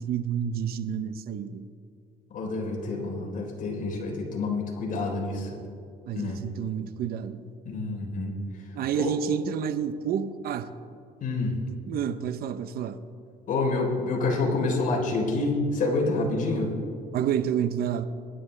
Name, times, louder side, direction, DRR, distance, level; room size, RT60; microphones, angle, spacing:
voice 1, 0.0-1.7 6.1-7.5 8.7-10.7 11.9-13.0 17.1-18.0, right 8 dB, 65° right, 12 dB, 0.8 m, -29 dB
voice 2, 2.3-5.5 6.1-6.4 7.7-8.4 9.0-9.1 11.2-11.6 13.5-16.7, left 3 dB, 50° left, -1 dB, 3.6 m, -27 dB
23.0 x 10.5 x 3.3 m, 2.4 s
cardioid pair, 110°, 17 cm